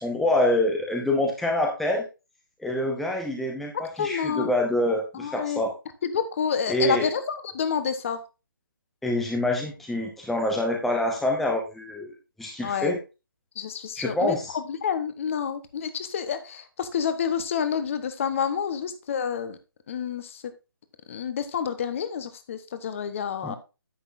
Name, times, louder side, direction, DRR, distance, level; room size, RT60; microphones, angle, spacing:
voice 1, 0.0-2.1 2.6-5.7 6.7-7.1 9.0-13.0 14.0-14.5 23.4-23.6, left 1 dB, ahead, 1 dB, 0.7 m, -26 dB
voice 2, 4.0-4.5 5.1-5.6 6.0-8.2 12.6-13.0 13.6-19.6 19.9-20.4 21.1-23.6, left 7 dB, 35° left, 11 dB, 1.1 m, -29 dB
10.0 x 8.1 x 2.6 m, 0.28 s
figure-of-eight pair, 150°, 12 cm